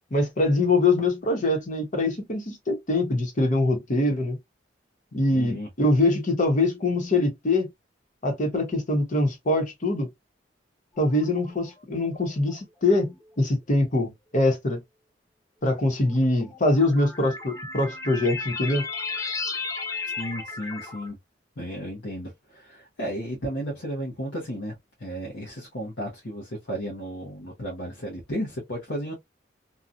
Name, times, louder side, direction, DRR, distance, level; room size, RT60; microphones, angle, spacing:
voice 1, 0.1-4.4 5.1-7.7 8.2-10.1 11.0-14.8 15.6-18.8, left 2 dB, 45° left, 1.0 m, -23 dB
voice 2, 5.3-5.7 20.2-21.2 21.6-29.1, equal, 80° left, 0.9 m, -34 dB
sound 1, 11.0-11.6 12.5-12.6 13.8-13.9 16.0-21.1, left 4 dB, 20° left, 0.6 m, -34 dB
2.7 x 2.3 x 2.4 m
head